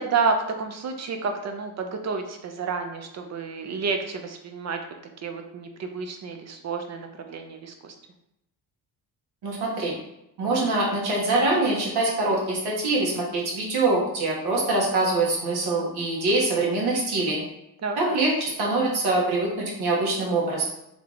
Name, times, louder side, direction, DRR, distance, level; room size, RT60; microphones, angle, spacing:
voice 1, 0.0-4.8 5.2-7.9 17.8-18.0, right 4 dB, 40° right, 5 dB, 0.5 m, -30 dB
voice 2, 9.4-9.9 10.4-17.4 18.0-20.7, right 2 dB, 65° right, -3 dB, 1.5 m, -24 dB
3.4 x 3.1 x 3.8 m, 0.85 s
cardioid pair, 150°, 41 cm